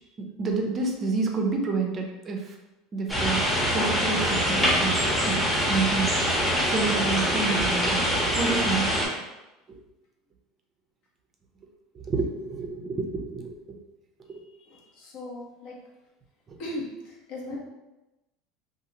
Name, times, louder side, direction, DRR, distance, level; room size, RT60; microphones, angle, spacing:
voice 1, 0.4-2.5 2.9-6.2 6.7-8.1 8.4-9.0 11.9-13.5, right 4 dB, 25° right, 2 dB, 0.5 m, -29 dB
sound 1, 3.1-9.1, equal, 5° left, 0.8 m, -24 dB
voice 2, 14.6-15.8 16.6-17.6, left 1 dB, 60° left, -2 dB, 0.8 m, -38 dB
2.8 x 2.4 x 2.8 m, 1.0 s
supercardioid pair, 140°, 0 cm